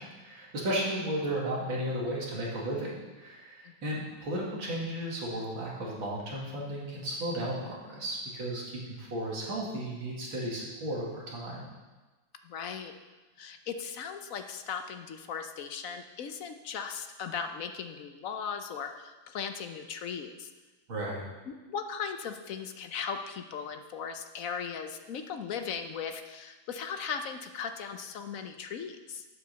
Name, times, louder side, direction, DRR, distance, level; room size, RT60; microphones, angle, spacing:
voice 1, 0.0-11.7 20.9-21.2, right 1 dB, 80° right, -4 dB, 3.1 m, -34 dB
voice 2, 12.4-12.9 13.4-20.5 21.5-29.3, left 6 dB, 65° left, 7 dB, 0.8 m, -38 dB
9.3 x 7.9 x 6.8 m, 1.2 s
omnidirectional pair, 2.1 m